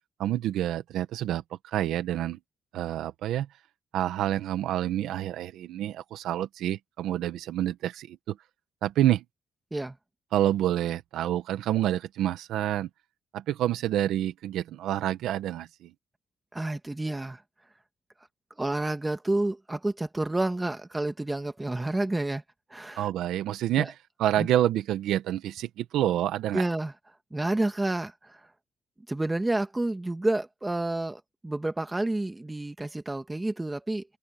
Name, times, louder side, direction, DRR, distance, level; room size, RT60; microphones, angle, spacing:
voice 1, 0.2-2.4 2.7-3.5 3.9-8.4 8.8-9.2 10.3-12.9 13.3-15.9 23.0-23.9 24.2-26.6, right 12 dB, 85° right, 1.3 m, -28 dB
voice 2, 16.5-17.4 18.6-22.4 22.7-23.1 23.8-23.9 24.4-24.5 26.5-26.9 27.3-28.4 29.1-34.0, right 2 dB, 15° right, 2.2 m, -29 dB
open air
cardioid pair, 90°, 0 cm